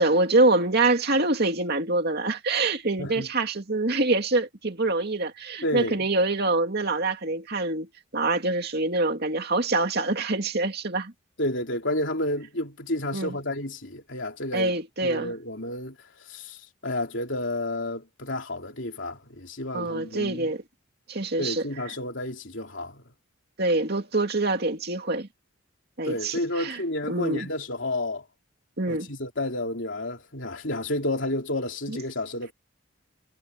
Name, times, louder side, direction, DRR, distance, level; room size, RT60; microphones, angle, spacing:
voice 1, 0.0-11.1 13.1-13.3 14.5-15.3 19.7-20.6 21.1-21.7 23.6-25.3 26.0-26.3 26.6-26.8 27.1-27.5 28.8-29.1 31.9-32.0, right 2 dB, 50° right, 2.4 m, -25 dB
voice 2, 5.6-6.1 11.4-14.7 15.0-16.0 16.3-20.5 21.4-23.0 26.0-28.2 28.9-32.5, left 1 dB, 60° left, 3.9 m, -31 dB
head